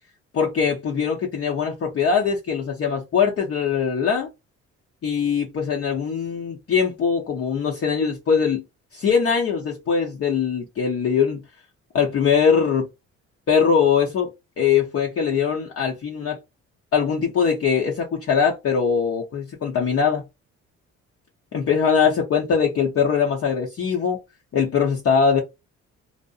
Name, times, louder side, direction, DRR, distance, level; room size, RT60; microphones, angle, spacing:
voice 1, 0.3-4.3 5.0-8.6 8.9-11.4 11.9-12.9 13.5-14.3 14.6-16.4 16.9-20.2 21.5-24.2 24.5-25.4, left 6 dB, 50° left, 0.7 m, -21 dB
2.7 x 2.0 x 2.3 m
cardioid pair, 90°, 30 cm